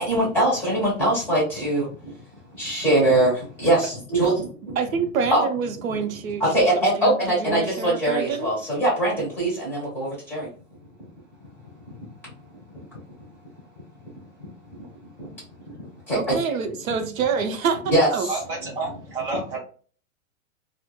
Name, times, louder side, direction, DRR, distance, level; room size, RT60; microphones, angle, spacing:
voice 1, 0.0-2.1 2.5-4.8 5.3-5.5 6.4-10.5 11.9-12.0 12.7-12.8 14.7-14.9 15.2-15.4 15.7-15.8 16.1-16.4 17.9-18.3, right 1 dB, 5° left, -5 dB, 1.0 m, -22 dB
voice 2, 4.8-8.5 16.1-18.3, right 6 dB, 80° right, 7 dB, 0.6 m, -27 dB
voice 3, 18.3-19.6, right 3 dB, 40° right, 0 dB, 0.7 m, -30 dB
2.8 x 2.1 x 2.2 m, 0.42 s
hypercardioid pair, 170°, 41 cm